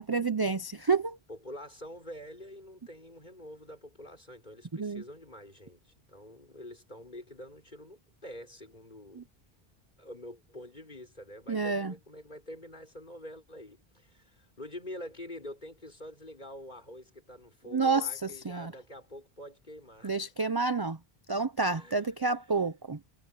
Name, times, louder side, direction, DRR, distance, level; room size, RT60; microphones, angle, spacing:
voice 1, 0.0-1.2 4.7-5.0 9.2-9.3 11.5-11.9 17.7-18.7 20.0-21.0 21.3-23.0, right 4 dB, 30° right, 0.5 m, -29 dB
voice 2, 1.3-9.3 10.0-20.2 21.7-22.5, left 1 dB, 45° left, 6.5 m, -46 dB
omnidirectional pair, 1.1 m